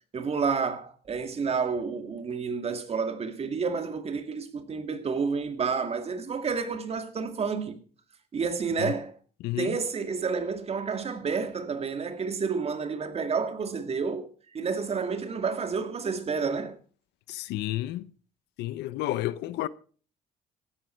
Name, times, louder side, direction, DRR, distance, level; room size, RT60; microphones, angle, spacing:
voice 1, 0.1-7.8 8.3-9.1 9.6-14.3 14.5-16.8, right 5 dB, 35° right, 2.3 m, -30 dB
voice 2, 9.4-9.8 17.3-18.1 18.6-19.7, left 15 dB, 85° left, 0.8 m, -31 dB
16.0 x 11.5 x 4.5 m
cardioid pair, 110°, 17 cm